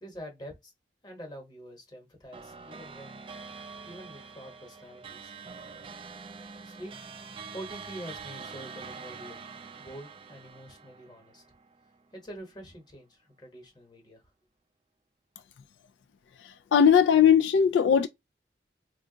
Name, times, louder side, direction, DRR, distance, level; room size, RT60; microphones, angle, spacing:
voice 1, 0.0-0.7 1.0-3.2 3.8-5.3 6.6-6.9 7.5-9.4 9.8-11.4 12.1-14.2, equal, 25° left, 1.1 m, -45 dB
sound 1, 2.3-12.0, right 5 dB, 30° right, 0.3 m, -45 dB
voice 2, 16.4-18.1, left 8 dB, 80° left, 0.3 m, -20 dB
2.4 x 2.3 x 3.8 m
head